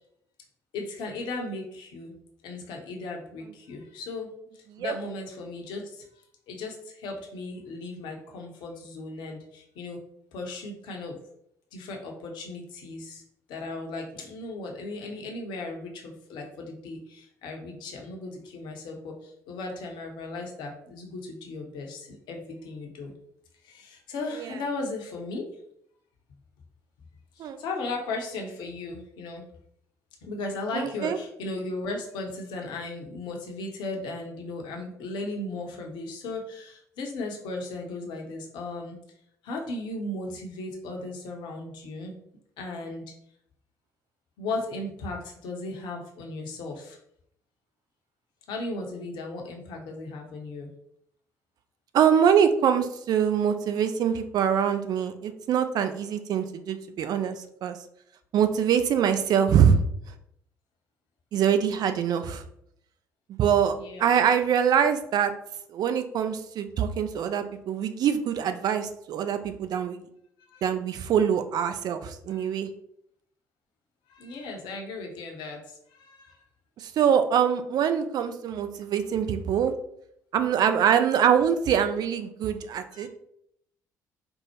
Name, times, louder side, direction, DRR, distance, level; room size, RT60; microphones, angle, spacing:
voice 1, 0.7-2.1 2.4-6.0 6.5-10.0 10.3-11.2 11.7-13.2 13.5-23.1 23.6-25.5 27.4-29.4 30.2-39.0 39.4-42.2 42.6-43.0 44.4-47.0 48.5-50.7 63.8-64.3 70.5-70.6 72.3-72.5 74.1-76.4 82.9-83.1, left 2 dB, 60° left, 1 dB, 0.7 m, -36 dB
voice 2, 30.7-31.2 51.9-57.8 58.3-59.8 61.3-62.4 63.3-63.7 64.0-65.3 65.7-70.0 70.6-72.7 76.8-79.7 80.3-83.1, right 8 dB, 50° right, 9 dB, 0.4 m, -24 dB
4.3 x 2.0 x 2.9 m, 0.72 s
figure-of-eight pair, 50°, 9 cm